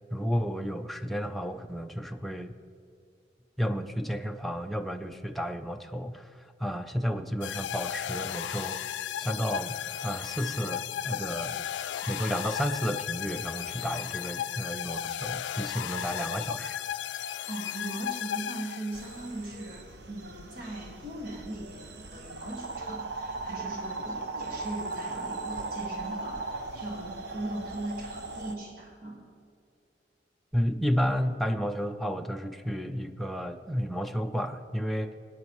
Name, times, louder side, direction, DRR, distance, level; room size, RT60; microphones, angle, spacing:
voice 1, 0.1-2.5 3.6-9.8 10.0-11.6 12.1-16.8 30.5-35.2, equal, ahead, 5 dB, 0.4 m, -32 dB
sound 1, 7.4-19.2, left 10 dB, 85° left, 0.3 m, -35 dB
voice 2, 17.5-29.3, right 1 dB, 55° right, -2 dB, 2.0 m, -39 dB
sound 2, 18.9-28.5, right 3 dB, 70° right, 0.9 m, -38 dB
18.0 x 9.6 x 3.1 m, 2.4 s
head